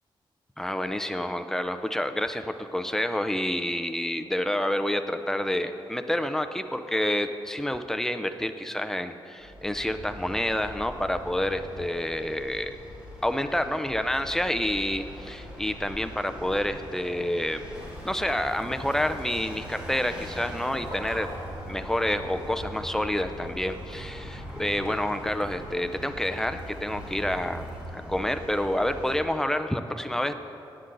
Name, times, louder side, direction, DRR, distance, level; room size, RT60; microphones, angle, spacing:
voice 1, 0.6-12.8 13.2-17.6 18.0-21.3 21.6-27.6 27.9-30.3, left 1 dB, 5° left, 8 dB, 0.5 m, -28 dB
Vehicle, 9.4-29.2, equal, 10° right, 2.3 m, -42 dB
Waves surf / Splash splatter / Trickle dribble, 17.7-27.8, right 1 dB, 35° right, 3.0 m, -43 dB
17.5 x 9.5 x 3.9 m, 2.8 s
wide cardioid pair, 140°, 9 cm